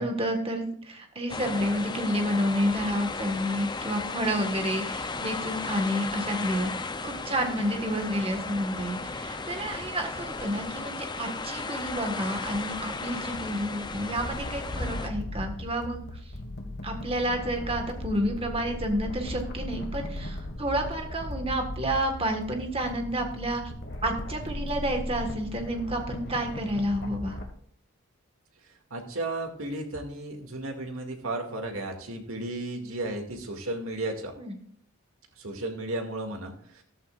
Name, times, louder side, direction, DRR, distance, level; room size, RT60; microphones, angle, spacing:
voice 1, 0.0-16.0 16.8-23.6 24.0-27.4 34.4-34.6, equal, 25° right, 4 dB, 1.6 m, -30 dB
sound 1, 1.3-15.1, left 3 dB, 20° left, 0.6 m, -35 dB
sound 2, 14.2-27.4, left 1 dB, 50° left, 1.8 m, -37 dB
voice 2, 28.9-34.3 35.4-36.8, right 2 dB, 75° right, 3 dB, 2.3 m, -34 dB
14.0 x 13.5 x 2.5 m, 0.62 s
head